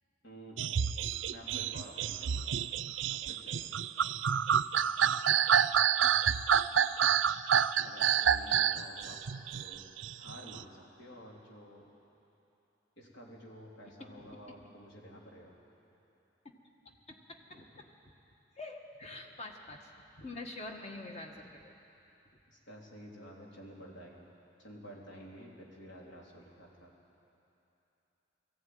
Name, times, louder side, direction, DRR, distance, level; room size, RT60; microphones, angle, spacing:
voice 1, 0.2-0.7 1.3-2.3 3.1-3.9 7.8-9.2 9.5-9.8 10.2-11.9 13.0-15.5 22.5-24.2 24.6-26.9, equal, 75° left, -2 dB, 3.3 m, -51 dB
sound 1, 0.6-10.6, right 8 dB, 85° right, 0.5 m, -28 dB
voice 2, 16.8-17.9 18.6-19.9 20.2-21.7, left 2 dB, 35° left, 3 dB, 1.6 m, -46 dB
19.5 x 14.5 x 9.3 m, 2.9 s
head